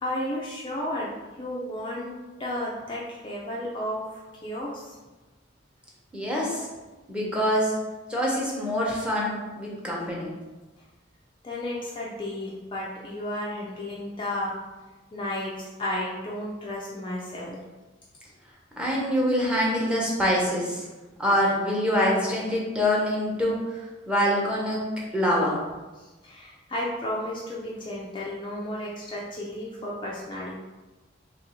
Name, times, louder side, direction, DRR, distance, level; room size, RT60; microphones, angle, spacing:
voice 1, 0.0-4.9 11.4-14.6 15.1-17.6 26.0-30.5, left 1 dB, 25° left, -4 dB, 0.5 m, -33 dB
voice 2, 6.1-6.7 7.1-7.7 8.1-10.3 18.8-20.8 21.2-23.6 24.1-24.8 25.1-25.6, equal, 5° right, -5 dB, 0.9 m, -25 dB
3.0 x 2.6 x 4.3 m, 1.2 s
head